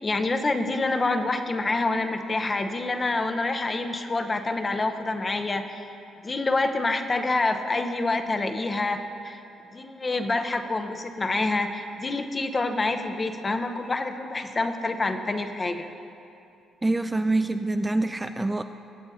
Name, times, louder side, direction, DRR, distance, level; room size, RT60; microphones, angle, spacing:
voice 1, 0.0-5.8 6.2-9.4 9.7-15.9, left 2 dB, 30° left, 7 dB, 0.8 m, -27 dB
voice 2, 16.8-18.6, right 2 dB, 15° right, 8 dB, 0.3 m, -25 dB
20.5 x 7.9 x 2.8 m, 2.7 s
cardioid pair, 90°, 0 cm